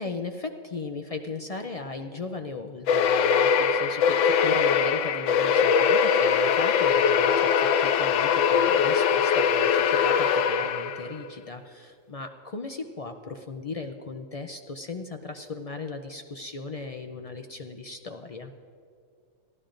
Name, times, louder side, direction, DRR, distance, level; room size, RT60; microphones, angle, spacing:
voice 1, 0.0-18.5, left 3 dB, 55° left, 6 dB, 0.4 m, -37 dB
sound 1, 2.9-11.2, left 7 dB, 75° left, 0.9 m, -22 dB
23.0 x 14.5 x 2.5 m, 2.4 s
omnidirectional pair, 1.3 m